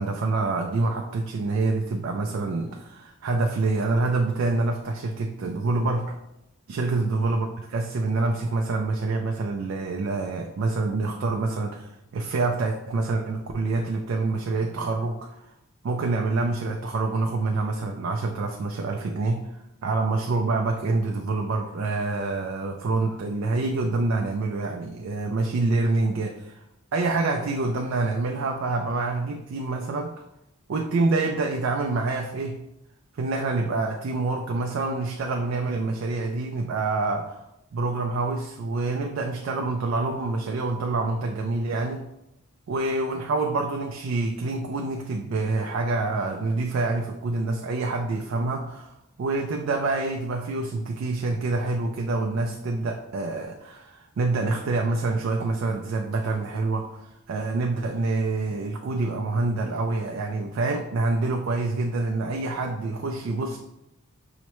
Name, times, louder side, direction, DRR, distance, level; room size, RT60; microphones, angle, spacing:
voice 1, 0.0-6.1 6.7-15.4 15.8-19.4 19.8-26.6 26.9-30.3 30.7-32.6 33.2-37.4 37.7-42.1 42.7-63.6, right 3 dB, 75° right, 1 dB, 0.3 m, -26 dB
5.6 x 2.1 x 3.0 m, 0.86 s
head